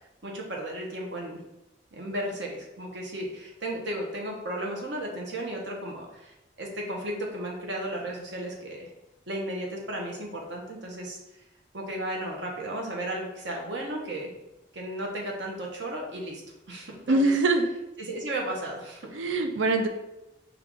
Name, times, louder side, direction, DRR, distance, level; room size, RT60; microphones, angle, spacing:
voice 1, 0.2-1.4 1.9-8.9 9.3-11.2 11.7-14.3 14.7-16.4 16.7-17.3 18.0-19.2, right 1 dB, 65° right, 0 dB, 0.9 m, -34 dB
voice 2, 17.1-17.7 19.1-19.9, right 2 dB, 85° right, 6 dB, 0.5 m, -23 dB
4.6 x 2.4 x 3.6 m, 0.94 s
head